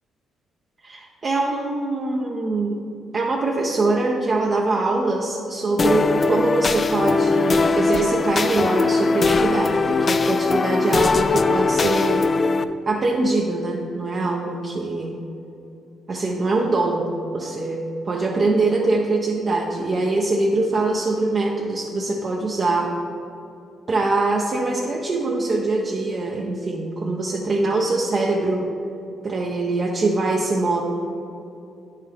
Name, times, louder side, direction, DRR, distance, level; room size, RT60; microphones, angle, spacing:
voice 1, 0.8-2.8 3.1-12.3 12.9-15.2 16.1-23.0 23.9-28.7 29.2-30.8, right 2 dB, 40° right, -2 dB, 0.7 m, -23 dB
sound 1, 5.8-12.6, left 4 dB, 35° left, 0.3 m, -20 dB
9.3 x 5.7 x 3.4 m, 2.7 s
cardioid pair, 90°, 0 cm